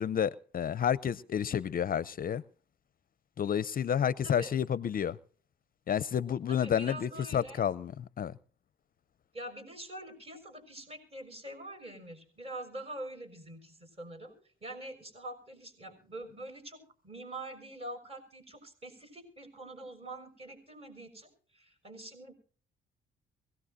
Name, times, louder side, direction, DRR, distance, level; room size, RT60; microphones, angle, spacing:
voice 1, 0.0-2.4 3.4-5.2 5.9-8.3, left 8 dB, 45° left, 0.6 m, -30 dB
voice 2, 6.5-7.7 9.3-14.4 14.6-22.3, right 1 dB, 30° right, 6.3 m, -45 dB
23.5 x 17.5 x 2.7 m
cardioid pair, 90°, 20 cm